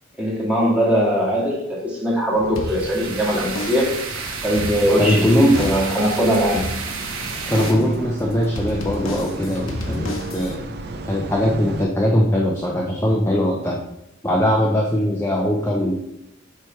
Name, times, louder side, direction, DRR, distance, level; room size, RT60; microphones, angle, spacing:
voice 1, 0.2-4.0 4.4-6.7 9.8-10.2, equal, 5° right, -5 dB, 1.9 m, -21 dB
sound 1, 2.3-11.9, right 2 dB, 50° right, 0.5 m, -35 dB
sound 2, 2.6-3.2 3.6-4.1 4.4-5.2 5.6-6.0 6.6-7.2 7.6-8.0 8.6-10.6, left 1 dB, 70° left, 1.0 m, -31 dB
sound 3, 2.6-7.7, right 4 dB, 70° right, 1.1 m, -31 dB
voice 2, 5.0-5.7 7.5-10.7 11.1-13.8 14.2-15.9, equal, 10° left, -2 dB, 0.6 m, -20 dB
8.0 x 3.3 x 4.5 m, 0.81 s
head